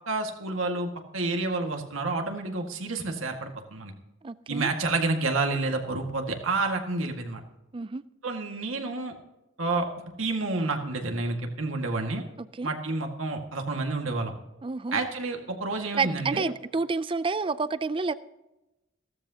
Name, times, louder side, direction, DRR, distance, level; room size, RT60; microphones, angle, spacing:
voice 1, 0.1-3.9 4.5-7.4 8.2-9.1 9.6-9.9 10.2-12.2 12.6-14.3 14.9-16.5, right 3 dB, 85° right, 3 dB, 1.9 m, -29 dB
voice 2, 4.2-4.7 7.7-8.0 12.4-12.7 14.6-15.0 15.9-18.1, right 4 dB, 25° right, 15 dB, 0.4 m, -29 dB
15.5 x 13.5 x 2.9 m, 0.98 s
head